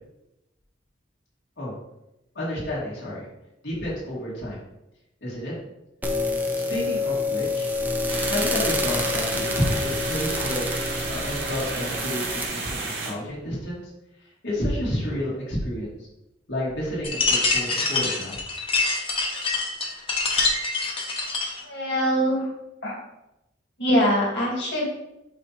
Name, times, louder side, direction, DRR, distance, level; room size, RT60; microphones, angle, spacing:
voice 1, 2.3-3.2 3.6-4.6 5.2-5.5 6.5-7.7 8.3-10.7 11.0-13.9 14.4-16.0 16.5-18.4, equal, 90° left, -7 dB, 2.1 m, -30 dB
sound 1, 6.0-12.5, left 2 dB, 10° right, 0.6 m, -27 dB
sound 2, 8.1-13.1, right 3 dB, 75° right, 1.9 m, -32 dB
sound 3, 17.0-21.6, left 3 dB, 30° left, 0.9 m, -25 dB
voice 2, 21.6-22.5 22.8-23.0 23.8-24.9, equal, 70° left, -5 dB, 2.1 m, -23 dB
8.4 x 2.8 x 4.1 m, 0.89 s
head